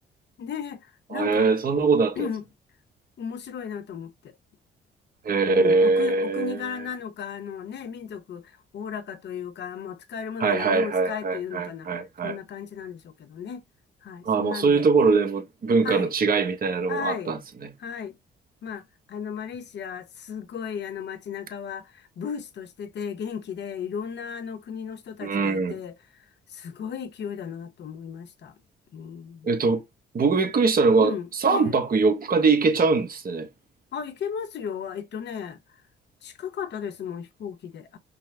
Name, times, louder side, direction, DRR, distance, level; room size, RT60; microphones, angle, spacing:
voice 1, 0.4-1.5 2.2-2.4 3.2-4.3 5.5-11.9 12.2-13.6 14.0-14.9 15.8-16.1 16.9-17.3 17.8-18.2 18.6-26.2 26.5-28.6 28.9-29.5 31.0-31.8 33.9-35.6 36.2-38.0, left 7 dB, 60° left, 0.9 m, -35 dB
voice 2, 1.1-2.2 5.2-6.6 10.4-12.4 14.2-17.7 25.2-25.8 29.4-29.8 30.1-31.1 31.4-33.5, right 4 dB, 45° right, 1.2 m, -22 dB
5.5 x 2.1 x 3.3 m
cardioid pair, 90°, 20 cm